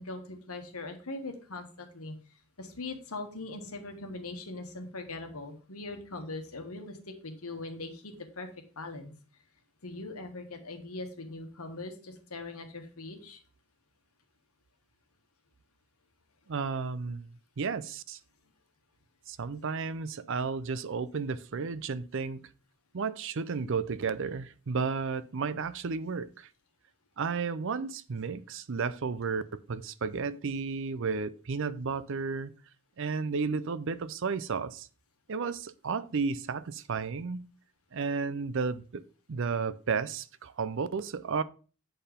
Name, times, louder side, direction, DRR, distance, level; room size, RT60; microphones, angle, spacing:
voice 1, 0.0-8.5 8.7-9.1 9.8-13.4, left 2 dB, 80° left, 1.5 m, -41 dB
voice 2, 16.5-17.3 17.6-18.2 19.3-22.4 22.9-26.5 27.2-29.4 29.7-32.5 33.0-34.9 35.3-37.4 37.9-39.0 39.3-41.4, right 5 dB, 60° right, 0.5 m, -33 dB
7.8 x 4.4 x 5.0 m
head